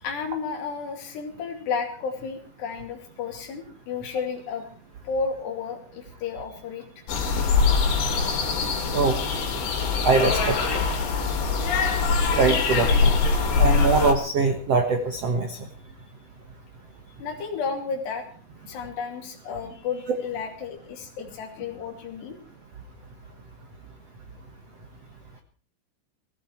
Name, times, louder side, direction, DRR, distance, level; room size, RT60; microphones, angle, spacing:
voice 1, 0.0-4.6 5.0-7.1 7.5-7.6 8.0-8.5 17.2-18.2 18.7-22.4, left 5 dB, 65° left, 3 dB, 4.7 m, -32 dB
sound 1, 7.1-14.1, left 5 dB, 85° left, 5.3 m, -23 dB
voice 2, 10.0-10.8 12.2-13.2 13.6-15.6, right 4 dB, 75° right, 6 dB, 1.4 m, -23 dB
18.0 x 17.0 x 4.6 m, 0.43 s
omnidirectional pair, 5.3 m